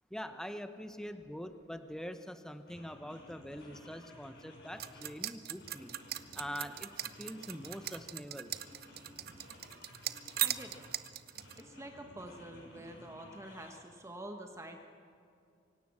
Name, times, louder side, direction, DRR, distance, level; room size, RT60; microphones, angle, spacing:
voice 1, 0.1-6.0 6.3-8.6, equal, 5° left, 9 dB, 0.8 m, -44 dB
sound 1, 2.1-2.3 2.7-5.2 5.5-8.1 8.4-11.0 11.3-13.7, left 1 dB, 65° left, 6.3 m, -55 dB
sound 2, 4.8-11.6, right 12 dB, 55° right, 0.8 m, -38 dB
voice 2, 10.4-10.9 11.6-14.8, right 1 dB, 15° right, 4 dB, 1.3 m, -47 dB
25.0 x 17.0 x 7.4 m, 2.5 s
head